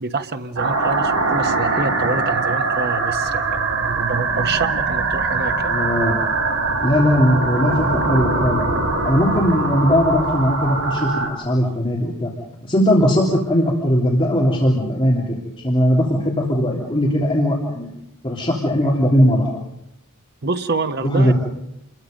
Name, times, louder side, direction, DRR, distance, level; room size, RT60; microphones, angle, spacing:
voice 1, 0.0-5.7 20.4-21.3, right 3 dB, 50° right, 6 dB, 1.3 m, -26 dB
sound 1, 0.6-11.3, right 3 dB, 80° right, 7.7 m, -22 dB
voice 2, 5.6-6.2 6.8-8.6 9.0-12.3 12.6-17.9 18.2-19.5 21.0-21.3, equal, 25° left, -4 dB, 3.4 m, -19 dB
28.5 x 22.0 x 5.4 m, 0.85 s
head